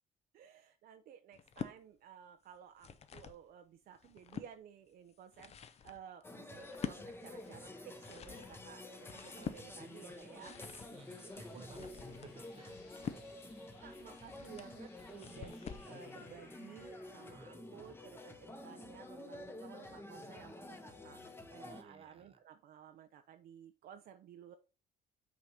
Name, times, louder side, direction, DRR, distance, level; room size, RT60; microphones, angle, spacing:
voice 1, 0.3-10.6 11.4-11.7 13.0-21.2 21.5-24.5, right 9 dB, 60° right, 0.6 m, -55 dB
sound 1, 1.3-1.8 2.5-3.4 3.9-4.5 5.1-15.9, left 7 dB, 40° left, 0.7 m, -47 dB
sound 2, 6.2-21.8, left 2 dB, 15° left, 1.0 m, -50 dB
sound 3, 6.7-17.4, left 5 dB, 85° left, 2.4 m, -65 dB
voice 2, 10.9-12.9 17.3-17.9 21.6-22.4, right 3 dB, 35° right, 1.3 m, -56 dB
6.0 x 4.2 x 4.9 m
cardioid pair, 110°, 17 cm